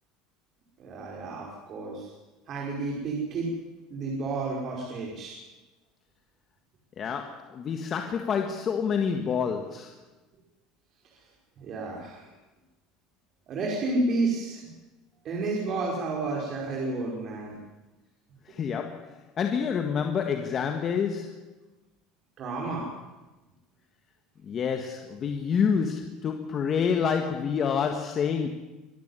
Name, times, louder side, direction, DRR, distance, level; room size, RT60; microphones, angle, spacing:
voice 1, 0.8-2.1 2.5-3.5 3.9-5.4 11.6-12.3 13.5-14.6 15.2-17.5 22.4-22.9, right 3 dB, 40° right, -2 dB, 5.0 m, -31 dB
voice 2, 7.0-9.9 18.5-21.4 24.5-28.5, left 6 dB, 35° left, 5 dB, 1.6 m, -28 dB
24.5 x 12.0 x 9.7 m, 1.1 s
cardioid pair, 140°, 0 cm